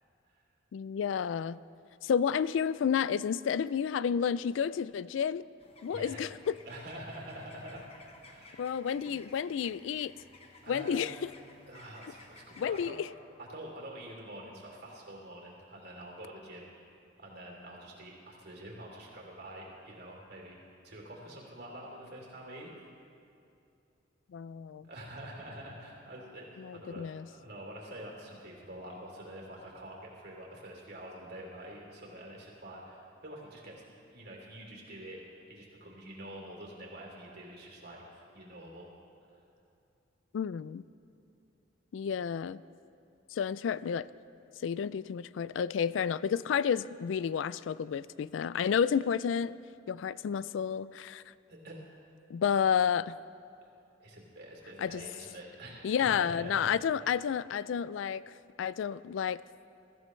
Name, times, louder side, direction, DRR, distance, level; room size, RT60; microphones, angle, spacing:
voice 1, 0.7-1.6 2.0-5.4 5.8-6.6 8.6-10.1 10.7-11.3 12.6-13.1 24.3-24.9 26.6-27.3 40.3-40.8 41.9-42.6 43.3-44.1 44.6-49.6 49.9-51.3 52.3-53.2 54.8-55.0 55.8-58.2 58.6-59.4, left 7 dB, 85° left, 18 dB, 0.3 m, -31 dB
sound 1, 5.6-12.9, left 3 dB, 35° left, 1.2 m, -56 dB
voice 2, 5.9-6.2 6.6-7.9 8.2-8.7 9.0-9.1 9.4-9.6 10.6-11.0 11.7-13.0 13.4-16.7 17.2-20.6 20.8-22.9 24.8-38.9 39.3-39.4 51.5-51.8 54.0-56.7, right 1 dB, 60° right, -2 dB, 3.1 m, -46 dB
22.0 x 14.0 x 3.2 m, 2.6 s
head